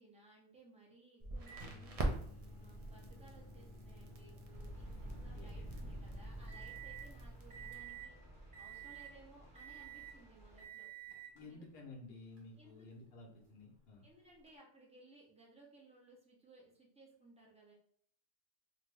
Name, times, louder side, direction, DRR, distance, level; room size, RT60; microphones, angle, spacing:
voice 1, 0.0-2.2 2.6-8.2 8.6-10.9 11.5-11.7 12.5-12.9 14.0-17.7, right 2 dB, 5° right, -4 dB, 0.6 m, -62 dB
Crackle, 1.2-7.7, right 2 dB, 70° right, 0.3 m, -45 dB
Microwave oven, 1.5-7.1 7.5-8.1 8.5-9.2 9.6-10.2 10.6-11.4 12.4-12.5 14.5-14.6, right 5 dB, 45° right, 1.0 m, -52 dB
sound 1, 4.5-10.6, right 1 dB, 25° right, 1.3 m, -51 dB
voice 2, 5.1-5.7 11.3-14.0, left 2 dB, 60° left, -1 dB, 0.8 m, -54 dB
2.6 x 2.5 x 3.3 m, 0.63 s
omnidirectional pair, 1.3 m